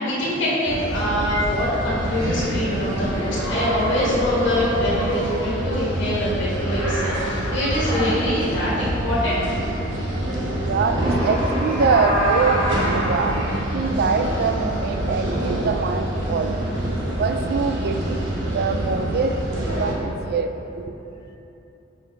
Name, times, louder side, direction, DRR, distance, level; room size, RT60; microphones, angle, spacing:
voice 1, 0.0-9.4, left 1 dB, 65° left, -7 dB, 1.4 m, -24 dB
sound 1, 0.7-19.9, right 1 dB, 80° right, 1.0 m, -26 dB
sound 2, 3.1-5.5 6.5-8.1 10.6-13.6, equal, 10° left, 1.5 m, -28 dB
voice 2, 10.4-18.2 18.5-20.9, right 4 dB, 55° right, 7 dB, 0.4 m, -24 dB
4.7 x 4.5 x 5.0 m, 3.0 s
head